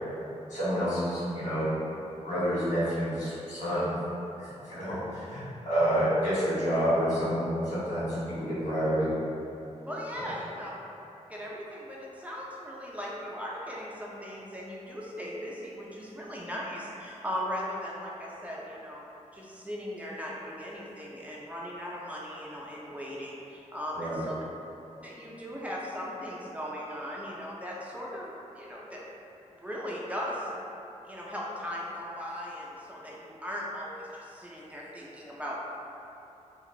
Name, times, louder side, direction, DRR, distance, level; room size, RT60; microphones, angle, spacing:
voice 1, 0.5-1.7 2.2-4.0 4.4-9.1 10.2-10.3 23.9-24.2, equal, 85° left, -12 dB, 1.4 m, -29 dB
voice 2, 9.9-10.7 11.3-19.0 19.3-24.4 25.0-29.0 29.5-30.5 31.1-35.6, equal, 10° right, -5 dB, 0.3 m, -38 dB
2.5 x 2.4 x 3.0 m, 3.0 s
wide cardioid pair, 130°, 12 cm